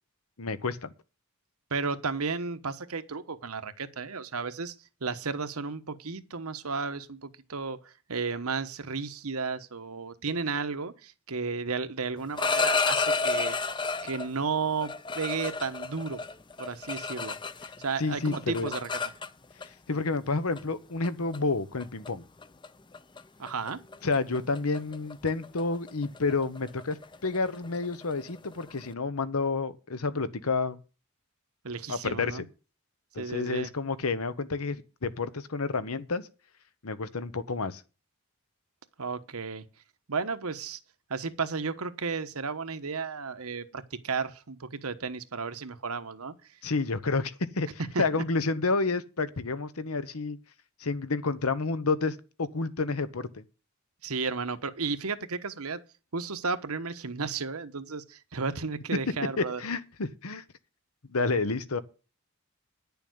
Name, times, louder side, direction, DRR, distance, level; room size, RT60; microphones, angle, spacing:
voice 1, 0.4-0.9 18.0-18.7 19.9-22.2 24.0-30.8 31.9-32.4 33.1-36.3 36.8-37.8 46.6-50.4 50.8-53.4 59.4-60.4 61.1-61.8, left 3 dB, 85° left, 1.0 m, -30 dB
voice 2, 1.7-4.7 5.0-13.6 14.0-16.2 16.6-17.4 17.8-18.9 23.4-23.8 31.6-32.4 33.2-33.7 39.0-39.6 40.1-40.8 41.1-46.3 47.9-48.2 54.0-55.8 56.1-59.6, right 4 dB, 85° right, 1.1 m, -33 dB
sound 1, 12.2-14.3 14.8-17.9 18.1-19.7 20.6-20.7 21.0-21.4 21.8-22.1 22.4-22.7 22.9-23.2 23.5-28.9, left 4 dB, 20° left, 0.5 m, -31 dB
10.5 x 7.0 x 7.9 m
head